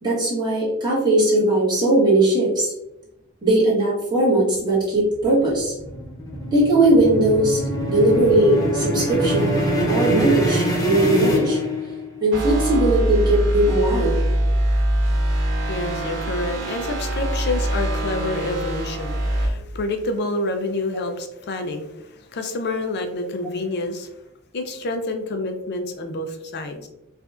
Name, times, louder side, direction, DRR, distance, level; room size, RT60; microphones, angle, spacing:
voice 1, 0.0-2.7 3.4-5.7 6.5-7.6 7.9-11.6 12.2-14.1, right 1 dB, 20° right, -6 dB, 1.4 m, -19 dB
sound 1, 4.9-12.2, equal, 15° left, 0.7 m, -24 dB
sound 2, 12.3-19.5, right 1 dB, 55° right, 1.4 m, -23 dB
voice 2, 15.7-24.1 24.5-26.9, left 2 dB, 50° left, 6 dB, 0.5 m, -28 dB
4.8 x 2.5 x 2.4 m, 0.86 s
head